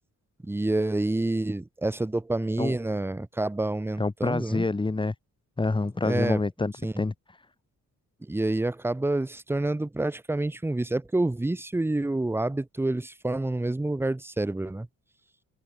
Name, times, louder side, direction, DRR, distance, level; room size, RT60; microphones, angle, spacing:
voice 1, 0.4-4.7 6.0-6.4 6.8-6.9 8.2-14.9, right 2 dB, 5° right, 0.7 m, -28 dB
voice 2, 4.0-5.1 5.6-7.1, left 3 dB, 15° left, 1.2 m, -27 dB
cardioid pair, 105°, 31 cm